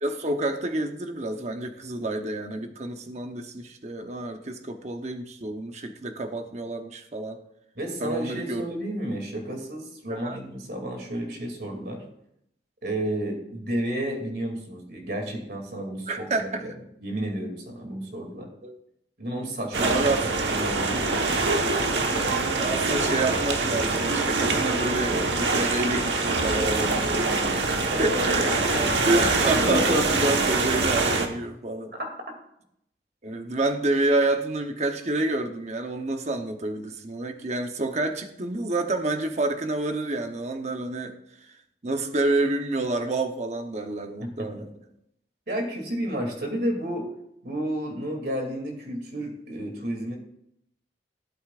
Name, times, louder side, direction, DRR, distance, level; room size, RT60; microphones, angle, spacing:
voice 1, 0.0-7.4 8.0-8.6 10.1-10.4 16.1-16.6 18.6-18.8 19.8-20.2 22.1-28.5 29.1-31.9 33.2-41.2 41.8-44.7, right 2 dB, 40° right, 5 dB, 0.9 m, -28 dB
voice 2, 7.8-12.0 12.8-16.7 17.0-18.5 19.2-20.0 20.4-21.3 27.9-28.8 31.9-32.1 44.2-44.6 45.5-47.1 47.4-50.2, right 1 dB, 60° right, 2 dB, 2.6 m, -32 dB
sound 1, 19.7-31.3, right 3 dB, 85° right, 1.3 m, -24 dB
16.5 x 8.1 x 2.5 m, 0.76 s
head